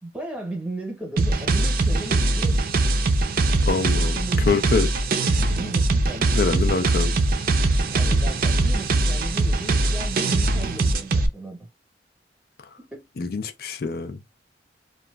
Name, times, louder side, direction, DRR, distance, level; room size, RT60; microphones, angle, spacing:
voice 1, 0.0-2.6 3.9-4.8 5.5-6.9 7.9-11.6 12.8-13.1, right 1 dB, 5° right, 0.9 m, -35 dB
sound 1, 1.2-11.3, right 2 dB, 50° right, 0.4 m, -21 dB
voice 2, 3.7-4.2 4.5-4.9 6.3-7.2 13.2-14.2, left 4 dB, 55° left, 0.4 m, -25 dB
2.9 x 2.3 x 2.3 m
head